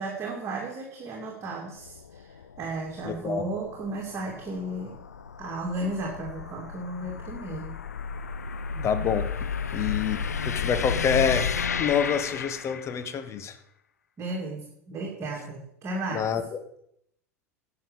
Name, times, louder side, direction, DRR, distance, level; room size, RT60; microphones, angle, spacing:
voice 1, 0.0-4.9 5.4-7.8 8.7-8.9 9.7-9.8 14.2-16.2, right 2 dB, 30° right, -1 dB, 2.6 m, -34 dB
sound 1, 1.8-13.2, left 6 dB, 80° left, 0.6 m, -33 dB
voice 2, 3.0-3.4 8.8-9.3 9.7-13.6 16.1-16.6, left 7 dB, 35° left, 10 dB, 1.4 m, -27 dB
11.5 x 6.7 x 7.3 m, 0.73 s
figure-of-eight pair, 80°, 9 cm